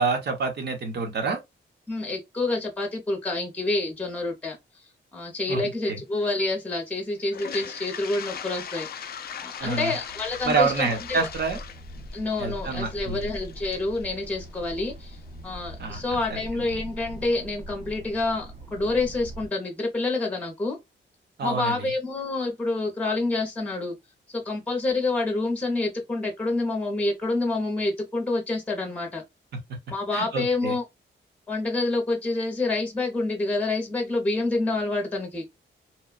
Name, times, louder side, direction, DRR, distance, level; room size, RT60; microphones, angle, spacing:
voice 1, 0.0-1.4 5.5-5.6 5.9-6.0 9.6-9.9 10.4-11.6 12.4-13.2 15.8-16.0 16.3-16.6 21.4-21.9 30.1-30.8, right 4 dB, 60° right, 0.9 m, -27 dB
voice 2, 1.9-4.6 5.1-9.0 9.4-11.3 12.1-15.2 15.4-20.8 21.4-24.0 24.3-29.2 29.9-30.8 31.5-35.4, left 2 dB, 5° left, 0.7 m, -28 dB
Toilet flush, 7.2-15.2, left 8 dB, 50° left, 0.4 m, -39 dB
sound 1, 9.6-19.5, right 1 dB, 35° right, 0.6 m, -42 dB
3.0 x 2.2 x 2.3 m
wide cardioid pair, 160°, 20 cm